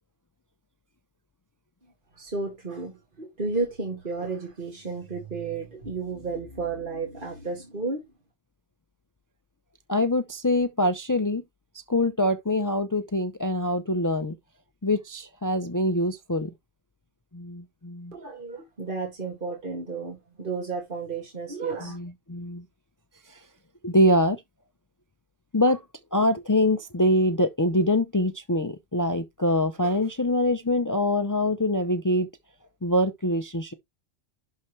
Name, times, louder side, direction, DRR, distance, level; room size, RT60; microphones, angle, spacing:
voice 1, 2.2-8.0 18.1-22.0, right 4 dB, 50° right, 2.5 m, -32 dB
voice 2, 9.9-11.4 11.9-14.4 14.8-16.5 17.3-18.1 21.8-22.6 23.3-23.4 23.8-24.4 25.5-25.8 26.1-32.3 32.8-33.7, left 1 dB, 25° left, 0.5 m, -24 dB
11.5 x 4.4 x 3.2 m
omnidirectional pair, 1.2 m